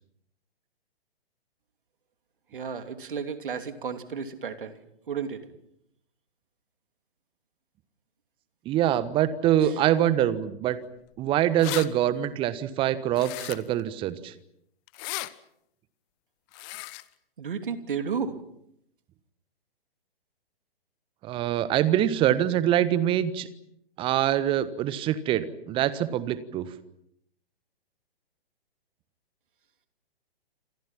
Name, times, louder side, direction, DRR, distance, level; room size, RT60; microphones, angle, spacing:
voice 1, 2.5-4.7 5.1-5.4 9.6-9.7 17.4-18.4, right 6 dB, 55° right, 8 dB, 2.9 m, -33 dB
voice 2, 8.6-10.8 11.2-14.3 21.2-23.5 24.0-26.7, right 11 dB, 15° right, 16 dB, 1.3 m, -24 dB
sound 1, 11.1-11.2 11.4-11.9 13.2-13.8 14.9-15.3 16.5-17.0, left 22 dB, 25° left, 1.0 m, -35 dB
28.5 x 27.0 x 5.9 m, 0.74 s
figure-of-eight pair, 120°, 31 cm